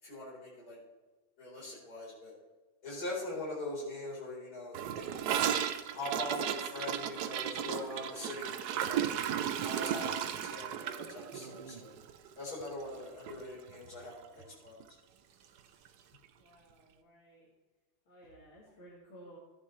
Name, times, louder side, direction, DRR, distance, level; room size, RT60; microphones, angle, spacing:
voice 1, 0.0-0.8 1.4-2.4 2.8-5.2 5.9-9.0 9.6-12.0 12.4-14.8, left 1 dB, 45° left, -6 dB, 4.8 m, -42 dB
Gurgling / Toilet flush, 4.7-13.0 13.3-13.4 13.7-14.1 14.4-14.5 14.8-14.9 15.8-15.9, right 9 dB, 70° right, 0.9 m, -35 dB
sound 1, 11.3-11.9 13.8-13.9 14.9-16.2, right 5 dB, 90° right, 1.8 m, -54 dB
voice 2, 16.4-17.5 18.1-19.4, equal, 75° left, -6 dB, 3.0 m, -55 dB
15.0 x 9.3 x 3.2 m, 1.2 s
omnidirectional pair, 2.3 m